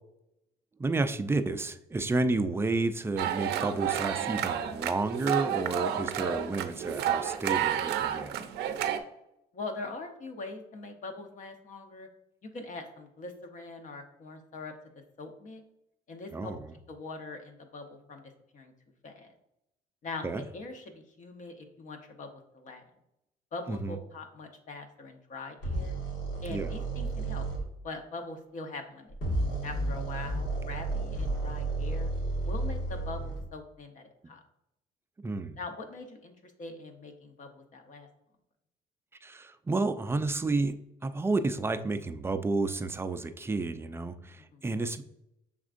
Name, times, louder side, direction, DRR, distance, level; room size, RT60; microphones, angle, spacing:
voice 1, 0.8-8.3 16.3-16.7 20.2-20.4 23.7-24.0 26.5-26.7 35.2-35.6 39.2-45.0, right 3 dB, 15° right, 9 dB, 0.3 m, -31 dB
sound 1, 3.2-9.0, right 10 dB, 75° right, 0.5 m, -31 dB
voice 2, 9.5-12.1 12.4-14.7 15.2-15.6 16.1-16.5 16.9-18.2 18.5-18.7 19.0-19.3 20.0-22.9 23.5-26.0 26.4-27.5 27.8-29.2 29.6-32.1 32.4-34.4 35.6-38.1 44.5-44.6, left 3 dB, 50° left, 6 dB, 0.9 m, -42 dB
sound 2, 25.6-27.6 29.1-33.5, right 2 dB, 85° left, 1.7 m, -32 dB
5.9 x 3.6 x 2.5 m, 0.83 s
cardioid pair, 110°, 17 cm